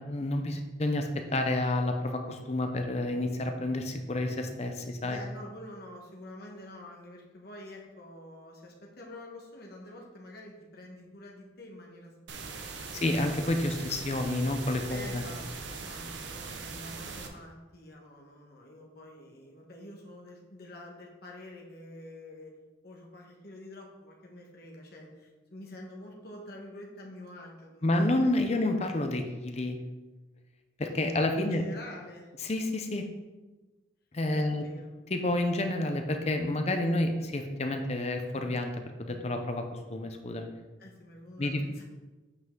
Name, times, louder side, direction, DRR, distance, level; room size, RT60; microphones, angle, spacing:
voice 1, 0.0-5.2 12.9-15.2 27.8-29.8 30.8-31.6 32.4-33.0 34.1-34.6 35.1-38.7 39.0-40.5 41.4-41.6, left 1 dB, 35° left, 5 dB, 0.6 m, -29 dB
voice 2, 5.0-12.9 14.9-22.5 22.8-28.2 28.5-28.6 31.3-32.3 34.3-34.9 40.8-41.8, left 1 dB, 50° left, -1 dB, 1.4 m, -47 dB
sound 1, 12.3-17.3, right 4 dB, 65° right, 0.8 m, -41 dB
8.1 x 5.6 x 3.8 m, 1.2 s
head